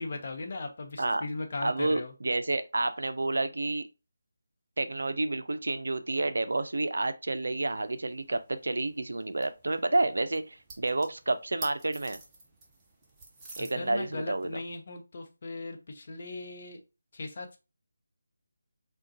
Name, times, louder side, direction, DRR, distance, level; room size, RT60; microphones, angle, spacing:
voice 1, 0.0-2.1 13.6-16.8 17.1-17.6, left 3 dB, 45° left, 0.6 m, -38 dB
voice 2, 1.6-3.9 4.8-12.2 13.6-14.5, right 2 dB, 70° right, 0.4 m, -30 dB
sound 1, 7.5-14.7, right 2 dB, 10° right, 0.6 m, -51 dB
3.6 x 2.2 x 2.7 m
figure-of-eight pair, 160°, 0 cm